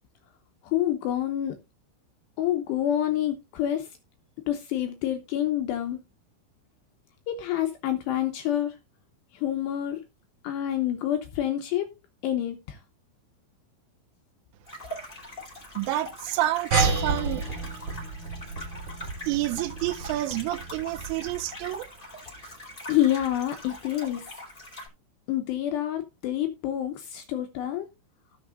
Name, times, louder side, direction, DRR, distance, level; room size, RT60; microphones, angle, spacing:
voice 1, 0.6-1.6 2.4-3.9 4.5-6.0 7.3-8.8 9.3-10.0 10.4-11.9 12.2-12.8 22.9-24.3 25.3-27.9, left 12 dB, 80° left, 2.5 m, -27 dB
sound 1, 14.7-24.9, left 1 dB, 10° left, 4.4 m, -42 dB
voice 2, 15.7-17.5 19.3-21.9, right 16 dB, 80° right, 3.1 m, -29 dB
sound 2, 16.7-21.6, right 4 dB, 30° right, 3.0 m, -30 dB
18.5 x 6.5 x 2.5 m
omnidirectional pair, 5.9 m